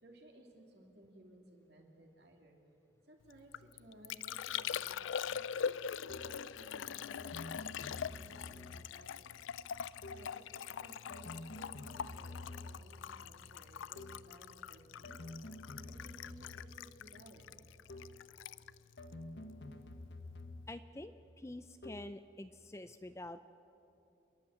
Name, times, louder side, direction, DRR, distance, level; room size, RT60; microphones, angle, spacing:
voice 1, 0.0-2.6 3.1-5.6 6.2-9.2 10.1-15.2 15.5-15.6 15.9-17.5, right 1 dB, 55° right, 2 dB, 2.7 m, -59 dB
Liquid, 3.3-19.9 20.2-20.7, left 8 dB, 85° left, 0.4 m, -43 dB
sound 1, 6.1-6.5 7.2-9.1 10.0-10.4 11.1-13.0 14.0-14.4 15.0-17.0 17.9-18.3 19.0-20.9 21.8-22.2, left 2 dB, 65° left, 1.3 m, -49 dB
voice 2, 20.7-23.4, left 1 dB, 15° left, 11 dB, 0.4 m, -47 dB
28.5 x 10.5 x 8.7 m, 2.8 s
head